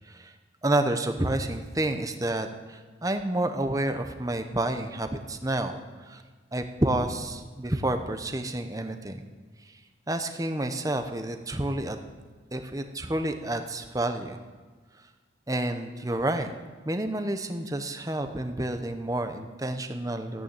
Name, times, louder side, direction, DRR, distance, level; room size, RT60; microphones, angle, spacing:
voice 1, 0.6-6.2 6.5-9.2 10.1-12.0 12.5-14.4 15.5-16.5 16.8-20.4, right 1 dB, 20° right, 7 dB, 0.9 m, -29 dB
14.5 x 9.3 x 8.8 m, 1.4 s
head